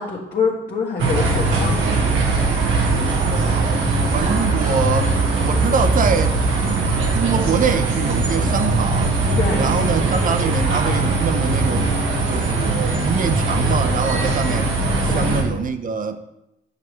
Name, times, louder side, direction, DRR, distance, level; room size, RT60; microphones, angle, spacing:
voice 1, 0.0-1.8 9.4-9.6 15.1-15.3, left 5 dB, 45° left, 1.6 m, -24 dB
sound 1, 1.0-15.4, right 3 dB, 75° right, 1.8 m, -20 dB
voice 2, 3.2-5.1 5.4-9.2 9.6-11.9 12.3-14.7 15.0-16.2, right 6 dB, 45° right, 0.8 m, -24 dB
10.5 x 6.1 x 3.2 m
cardioid pair, 90°, 20 cm